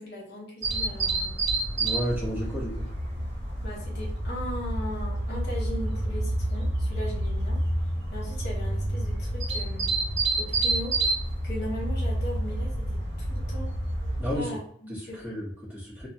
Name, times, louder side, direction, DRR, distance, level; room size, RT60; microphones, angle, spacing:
voice 1, 0.0-1.4 3.6-7.6 8.1-10.0 10.4-11.0 11.4-13.7 14.3-15.4, left 1 dB, 50° left, -3 dB, 1.0 m, -38 dB
sound 1, 0.6-14.4, right 1 dB, 55° right, 0.6 m, -29 dB
voice 2, 1.8-2.9 14.2-14.6 14.9-16.1, equal, 10° right, -8 dB, 1.0 m, -32 dB
3.1 x 2.1 x 2.6 m, 0.64 s
head